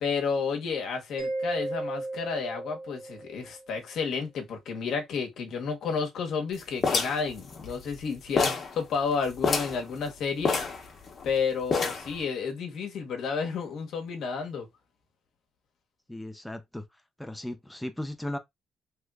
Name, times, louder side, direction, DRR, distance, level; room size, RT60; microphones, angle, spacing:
voice 1, 0.0-10.6 11.2-14.7, left 5 dB, 75° left, 1.0 m, -31 dB
Mallet percussion, 1.2-3.7, right 2 dB, 70° right, 1.2 m, -35 dB
sound 1, 6.8-8.0 8.4-8.7 9.0-9.1 9.4-9.8 10.5-11.3 11.7-12.2, left 4 dB, 50° left, 1.0 m, -27 dB
voice 2, 16.1-16.8 17.2-18.4, left 1 dB, 5° left, 0.5 m, -36 dB
3.2 x 2.9 x 2.3 m
cardioid pair, 90°, 0 cm